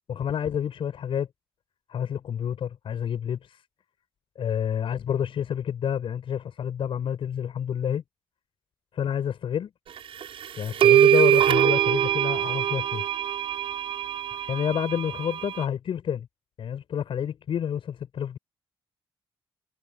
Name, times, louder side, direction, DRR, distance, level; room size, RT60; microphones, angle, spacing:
voice 1, 0.1-1.3 1.9-3.6 4.4-8.0 8.9-9.7 10.5-13.0 14.5-16.3 16.6-18.4, left 8 dB, 65° left, 7.6 m, -29 dB
sound 1, 10.2-10.3 10.8-15.6, right 10 dB, 70° right, 6.7 m, -22 dB
cardioid pair, 100°, 10 cm